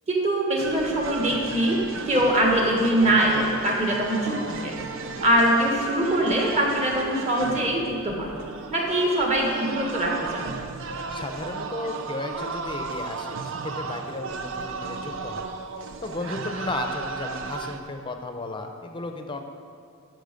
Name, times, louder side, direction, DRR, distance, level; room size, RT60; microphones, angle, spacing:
voice 1, 0.1-4.7 5.2-8.4 8.7-10.5, right 1 dB, 30° right, -1 dB, 1.6 m, -23 dB
sound 1, 0.6-17.8, right 4 dB, 60° right, 0.6 m, -34 dB
voice 2, 11.1-15.5 16.0-19.4, left 2 dB, 20° left, 5 dB, 0.7 m, -34 dB
12.0 x 6.1 x 5.2 m, 2.6 s
head